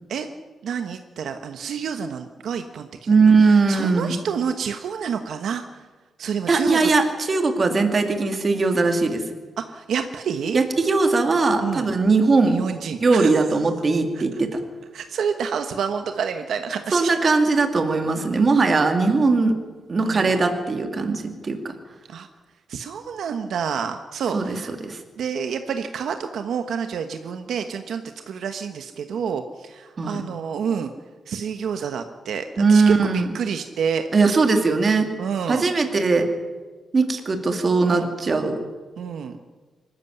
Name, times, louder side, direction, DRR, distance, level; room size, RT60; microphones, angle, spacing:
voice 1, 0.6-5.9 6.2-6.9 9.7-10.6 11.6-11.9 12.5-13.4 14.1-14.2 14.9-17.1 20.0-20.3 22.1-22.3 22.7-24.7 25.2-30.9 31.3-34.0 35.2-35.7 37.8-38.1 39.0-39.4, right 7 dB, 65° right, 7 dB, 1.3 m, -28 dB
voice 2, 3.1-4.1 6.5-9.2 10.5-12.6 13.0-14.6 16.9-19.6 19.9-21.7 24.3-25.0 30.0-30.2 32.6-33.3 34.1-35.1 35.5-36.3 36.9-38.6, right 4 dB, 30° right, 5 dB, 2.4 m, -20 dB
24.5 x 13.5 x 9.7 m, 1.3 s
wide cardioid pair, 170°, 0 cm